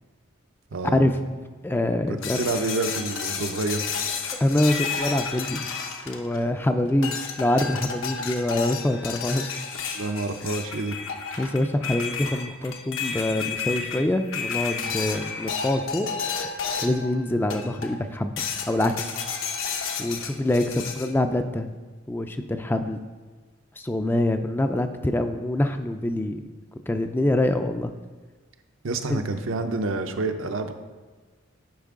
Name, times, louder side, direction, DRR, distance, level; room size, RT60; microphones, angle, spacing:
voice 1, 0.7-1.1 2.4-4.0 9.9-11.0 28.8-30.7, right 3 dB, 75° right, 6 dB, 0.6 m, -28 dB
voice 2, 1.6-2.4 4.4-5.6 6.1-9.6 11.4-16.1 16.8-19.2 20.0-21.7 22.1-23.0 23.8-26.4 26.9-27.9 29.1-29.2, left 1 dB, 10° left, 7 dB, 0.3 m, -25 dB
sound 1, 2.2-6.6 7.0-17.1 17.5-18.0 18.4-21.1, left 6 dB, 75° left, 0.8 m, -31 dB
10.5 x 5.2 x 3.6 m, 1.4 s
head